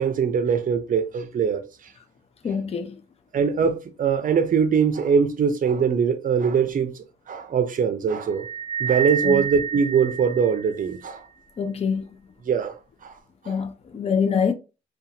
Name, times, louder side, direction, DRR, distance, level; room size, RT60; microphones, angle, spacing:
voice 1, 0.0-1.6 3.3-6.9 7.3-8.5 8.8-11.2 12.5-12.7 13.0-13.1 13.5-13.6, right 6 dB, 45° right, 0.5 m, -22 dB
voice 2, 2.4-3.0 9.2-9.4 11.6-12.1 13.5-14.5, left 6 dB, 30° left, 0.4 m, -25 dB
sound 1, 8.3-11.0, right 7 dB, 50° left, 1.4 m, -29 dB
2.5 x 2.3 x 2.8 m
cardioid pair, 90°, 20 cm